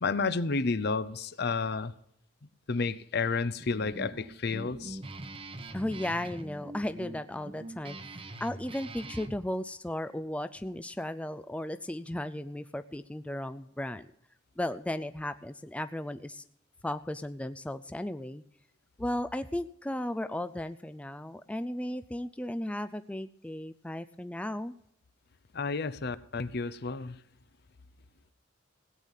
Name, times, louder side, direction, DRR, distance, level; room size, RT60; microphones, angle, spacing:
voice 1, 0.0-1.9 2.7-5.0 25.5-27.2, left 4 dB, 55° left, 0.7 m, -31 dB
Guitar, 3.6-9.4, right 2 dB, 30° right, 0.9 m, -43 dB
voice 2, 5.7-14.1 14.6-16.4 16.8-18.4 19.0-24.7, left 1 dB, 5° left, 0.4 m, -35 dB
17.0 x 9.1 x 5.6 m
head